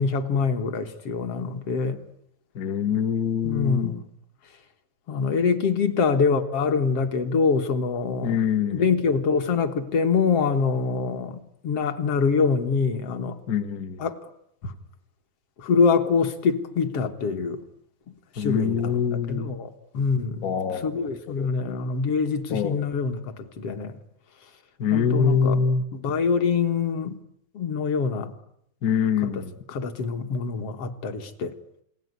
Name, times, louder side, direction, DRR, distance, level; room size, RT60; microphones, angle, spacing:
voice 1, 0.0-2.0 3.4-4.0 5.1-8.4 8.7-13.4 14.0-14.2 14.6-14.7 15.6-17.6 18.4-19.0 19.3-20.4 20.8-24.0 24.9-25.6 25.9-27.2 27.5-28.3 29.2-29.3 29.7-31.5, left 5 dB, 55° left, 2.2 m, -25 dB
voice 2, 2.5-4.0 8.2-8.9 13.5-14.0 18.4-19.5 20.4-21.5 22.5-22.8 24.8-25.8 28.8-29.6, left 6 dB, 70° left, 0.8 m, -25 dB
28.0 x 20.5 x 9.5 m
omnidirectional pair, 3.6 m